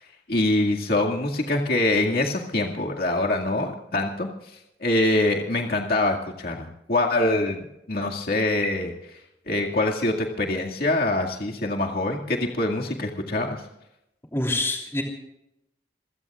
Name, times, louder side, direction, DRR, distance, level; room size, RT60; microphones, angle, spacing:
voice 1, 0.3-4.3 4.8-9.2 9.5-13.6, left 2 dB, 55° left, 0 dB, 2.1 m, -24 dB
voice 2, 14.3-15.0, left 1 dB, 15° left, 0 dB, 3.0 m, -25 dB
28.0 x 16.5 x 2.4 m, 0.83 s
head